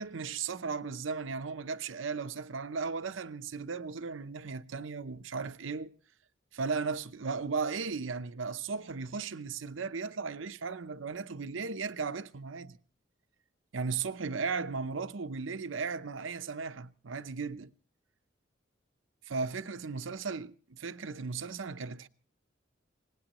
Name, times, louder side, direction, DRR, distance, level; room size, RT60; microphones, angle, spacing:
voice 1, 0.0-5.9 6.5-12.8 13.7-17.7 19.3-22.1, right 5 dB, 80° right, 0.7 m, -36 dB
25.5 x 19.0 x 3.0 m
head